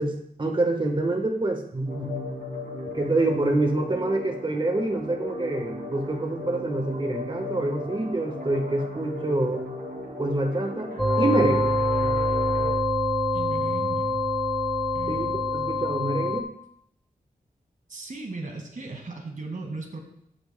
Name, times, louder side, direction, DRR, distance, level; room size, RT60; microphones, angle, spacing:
voice 1, 0.0-2.1 2.9-9.6 10.2-11.7 15.1-16.5, right 2 dB, 30° right, 3 dB, 1.3 m, -26 dB
sound 1, 1.9-12.7, left 1 dB, 80° right, 2.9 m, -36 dB
sound 2, 11.0-16.4, left 1 dB, ahead, 0.9 m, -25 dB
voice 2, 13.3-14.2 14.9-15.4 17.9-20.0, right 3 dB, 60° right, 1 dB, 2.0 m, -37 dB
13.5 x 8.6 x 2.2 m, 0.71 s
wide cardioid pair, 80°, 15 cm